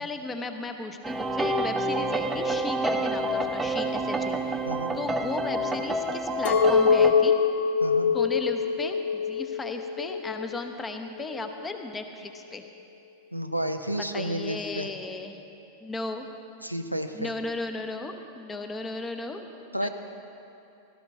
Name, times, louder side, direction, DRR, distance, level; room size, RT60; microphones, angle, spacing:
voice 1, 0.0-4.6 4.9-7.4 8.1-12.6 14.1-15.4 15.8-16.3 17.1-19.4 19.8-19.9, left 3 dB, 15° left, 6 dB, 0.9 m, -35 dB
sound 1, 1.0-7.1, right 1 dB, 10° right, 0.7 m, -28 dB
Chink clink, 6.4-10.7 11.2-11.8, left 5 dB, 60° left, 0.8 m, -24 dB
voice 2, 7.8-8.1 13.3-14.9 16.6-17.3 19.7-19.9, right 1 dB, 90° left, 7 dB, 0.6 m, -31 dB
17.5 x 13.0 x 3.6 m, 2.7 s
figure-of-eight pair, 90°, 0 cm